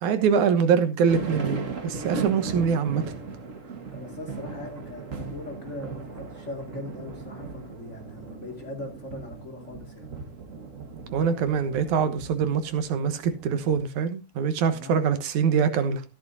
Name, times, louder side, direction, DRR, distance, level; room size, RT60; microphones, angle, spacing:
voice 1, 0.0-3.0 11.1-16.0, right 6 dB, 85° right, 2.6 m, -24 dB
sound 1, 1.1-13.8, right 4 dB, 35° right, 1.4 m, -37 dB
voice 2, 3.9-10.2 14.7-15.0, left 2 dB, 25° left, 2.4 m, -40 dB
14.0 x 11.5 x 2.7 m
omnidirectional pair, 3.3 m